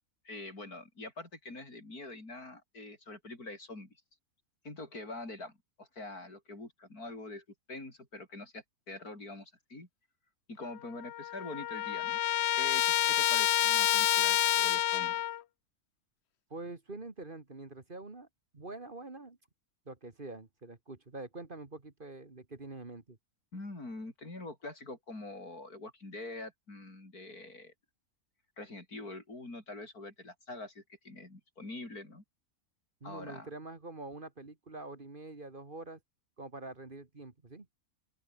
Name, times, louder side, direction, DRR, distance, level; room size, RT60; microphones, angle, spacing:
voice 1, 0.2-3.9 4.6-9.9 10.5-12.2 12.6-15.2 23.5-27.7 28.6-32.2 33.0-33.5, left 2 dB, 80° left, 6.5 m, -45 dB
Trumpet, 10.6-10.7 11.0-15.4, left 12 dB, 60° left, 0.7 m, -28 dB
voice 2, 16.5-18.3 18.5-19.4 19.9-23.2 33.0-36.0 36.4-37.7, right 2 dB, 35° right, 2.1 m, -45 dB
open air
omnidirectional pair, 1.6 m